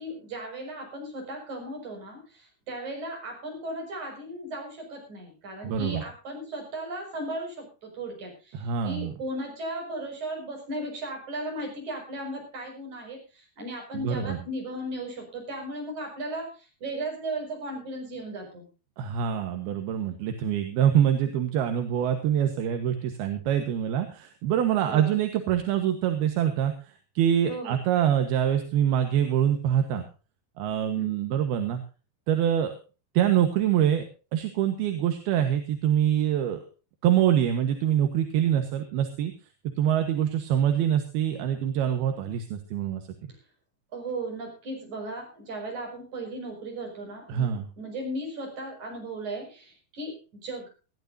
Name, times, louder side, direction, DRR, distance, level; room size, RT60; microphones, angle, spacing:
voice 1, 0.0-18.7 24.8-25.2 27.5-27.8 31.0-31.2 43.9-50.7, right 1 dB, 50° right, 2 dB, 7.3 m, -36 dB
voice 2, 5.6-6.0 8.5-9.1 13.9-14.4 19.0-30.1 30.6-31.8 32.3-32.7 33.1-34.0 34.3-36.6 37.0-39.3 39.8-43.0 47.3-47.7, right 10 dB, 80° right, 7 dB, 3.3 m, -25 dB
20.0 x 15.0 x 2.7 m, 0.34 s
omnidirectional pair, 4.5 m